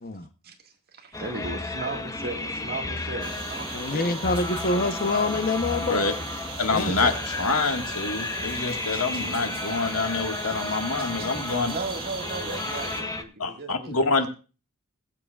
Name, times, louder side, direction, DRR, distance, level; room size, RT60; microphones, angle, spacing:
voice 1, 0.4-4.2 6.9-7.1 11.7-14.0, right 3 dB, 45° right, 3 dB, 1.9 m, -36 dB
sound 1, 1.1-13.2, left 2 dB, 15° left, 0.8 m, -33 dB
sound 2, 3.2-13.0, right 3 dB, 25° right, 2.2 m, -37 dB
voice 2, 3.7-6.0 6.7-6.9, left 2 dB, 45° left, 9 dB, 0.9 m, -26 dB
voice 3, 5.8-6.1 6.6-7.1 7.4-11.7 13.4-14.3, left 3 dB, 75° left, 5 dB, 1.7 m, -26 dB
21.0 x 7.7 x 2.4 m, 0.33 s
head